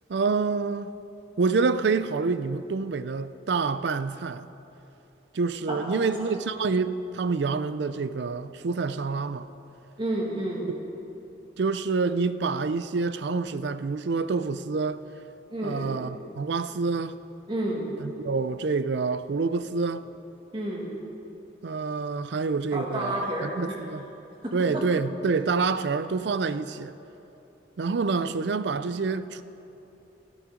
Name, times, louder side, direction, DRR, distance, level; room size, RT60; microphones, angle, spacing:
voice 1, 0.1-0.9 1.4-4.5 5.3-9.5 10.7-10.8 11.6-15.0 15.6-17.1 18.0-20.0 21.6-24.1 24.5-26.9 27.8-29.4, right 4 dB, 70° right, 0.4 m, -27 dB
voice 2, 5.7-6.3 10.0-10.7 15.5-15.9 17.5-17.8 20.5-20.9 22.7-23.7 24.4-24.8, right 1 dB, 25° right, 2.2 m, -30 dB
13.5 x 13.0 x 5.0 m
head